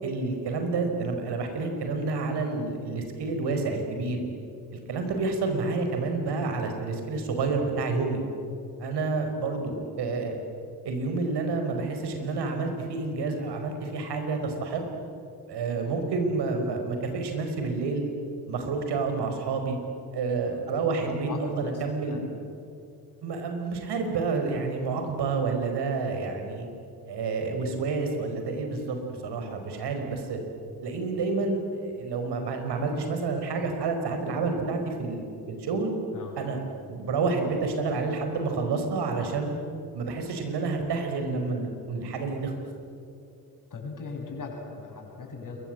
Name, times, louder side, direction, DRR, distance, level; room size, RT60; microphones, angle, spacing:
voice 1, 0.0-4.2 4.7-8.2 8.8-10.4 10.8-14.8 15.5-18.1 18.5-19.8 20.1-22.3 23.2-26.7 27.1-30.4 30.8-35.9 36.4-39.6 39.9-42.5, right 4 dB, 60° right, 5 dB, 5.0 m, -29 dB
voice 2, 21.0-22.2 36.1-36.4 43.7-45.6, left 4 dB, 40° left, 1 dB, 8.0 m, -39 dB
28.0 x 23.5 x 7.8 m, 2.5 s
figure-of-eight pair, 45°, 46 cm